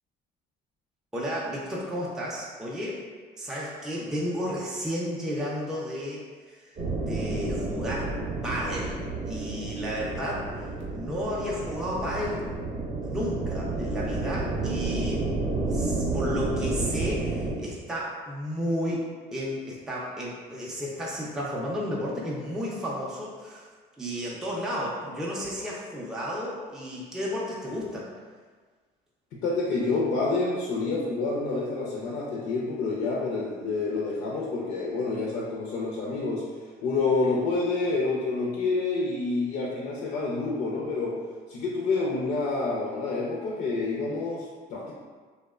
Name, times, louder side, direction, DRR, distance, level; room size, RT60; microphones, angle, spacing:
voice 1, 1.1-3.0 3.4-8.2 8.4-12.4 13.0-15.3 15.7-19.0 19.3-23.7 24.0-28.1, equal, 5° right, -5 dB, 0.3 m, -33 dB
sound 1, 6.8-17.6, right 2 dB, 40° right, 0.6 m, -30 dB
voice 2, 29.3-36.4 36.8-41.2 41.5-44.9, left 3 dB, 70° left, -4 dB, 0.5 m, -28 dB
2.9 x 2.1 x 2.3 m, 1.5 s
cardioid pair, 120°, 17 cm